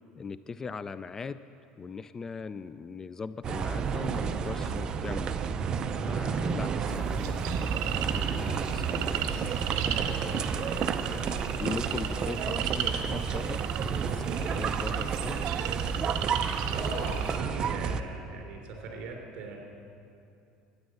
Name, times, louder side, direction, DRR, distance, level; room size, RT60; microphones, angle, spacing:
voice 1, 0.1-1.4 1.8-5.4 6.0-11.3 11.6-15.4, left 5 dB, 25° left, 14 dB, 0.3 m, -40 dB
sound 1, 3.4-18.0, right 6 dB, 35° right, 0.6 m, -31 dB
sound 2, 6.9-17.4, right 10 dB, 80° right, 1.1 m, -36 dB
Bowed string instrument, 7.8-13.3, equal, 55° left, 2.9 m, -51 dB
voice 2, 16.7-19.6, right 3 dB, 55° right, 1 dB, 3.6 m, -39 dB
12.5 x 9.7 x 7.7 m, 2.6 s
supercardioid pair, 120°, 2 cm